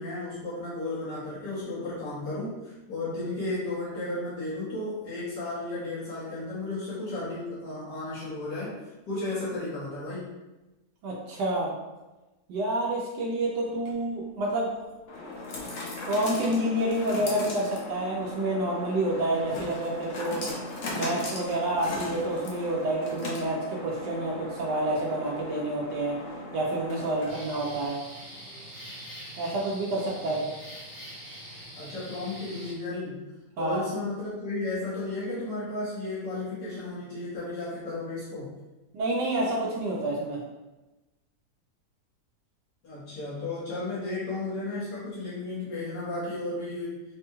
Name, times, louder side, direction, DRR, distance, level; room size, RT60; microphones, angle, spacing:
voice 1, 0.0-8.8 9.1-10.3 30.3-30.4 31.8-33.3 33.6-38.6 42.8-47.0, left 2 dB, 75° left, -10 dB, 1.8 m, -34 dB
voice 2, 11.0-11.7 12.5-14.7 16.1-20.4 20.9-26.2 26.5-28.0 29.4-30.4 33.6-33.9 38.9-40.4, right 1 dB, 90° right, -3 dB, 1.2 m, -28 dB
sound 1, 13.7-27.6, left 2 dB, 55° left, 0.9 m, -38 dB
sound 2, 27.3-32.7, equal, 15° left, 0.8 m, -44 dB
4.2 x 2.3 x 2.9 m, 1.1 s
omnidirectional pair, 1.8 m